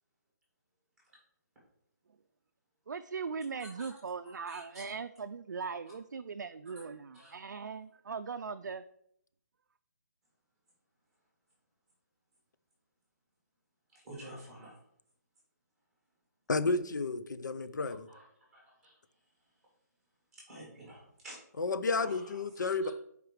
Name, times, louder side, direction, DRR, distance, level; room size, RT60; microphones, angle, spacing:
voice 1, 2.9-8.8, right 5 dB, 70° right, 0.4 m, -39 dB
voice 2, 3.6-4.0 4.2-4.8 7.1-7.3 13.9-14.8 18.1-18.3 18.5-19.0 20.5-21.4 22.0-22.9, right 1 dB, 5° right, 2.1 m, -50 dB
voice 3, 16.5-18.1 21.6-22.9, left 3 dB, 75° left, 0.6 m, -31 dB
4.9 x 4.8 x 4.8 m
hypercardioid pair, 175°, 10 cm